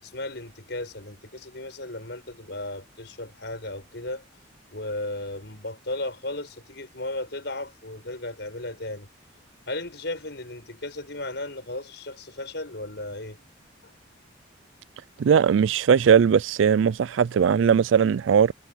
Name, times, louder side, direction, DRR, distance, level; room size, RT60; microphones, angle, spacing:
voice 1, 0.0-4.2 4.7-9.1 9.7-13.4, left 2 dB, 55° left, 7.3 m, -35 dB
voice 2, 15.2-18.5, right 7 dB, 70° right, 0.3 m, -19 dB
head